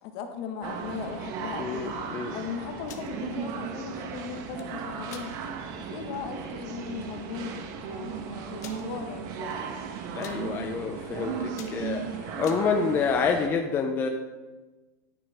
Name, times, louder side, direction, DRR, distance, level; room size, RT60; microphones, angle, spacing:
voice 1, 0.0-2.0 2.3-5.3 5.8-9.8, left 6 dB, 50° left, 6 dB, 1.4 m, -38 dB
sound 1, 0.6-13.5, right 6 dB, 45° right, 1.2 m, -36 dB
voice 2, 1.6-2.4 10.2-14.1, left 5 dB, 25° left, 3 dB, 0.8 m, -28 dB
sound 2, 2.7-3.1 4.3-4.7 5.1-5.3 5.8-5.9 6.3-6.5 7.3-7.4 7.6-7.7 8.6-8.8 9.5-9.8 10.0-10.4 11.0-11.2 11.5-12.6, left 8 dB, 80° left, 1.4 m, -46 dB
13.0 x 9.0 x 3.6 m, 1.2 s
supercardioid pair, 140°, 9 cm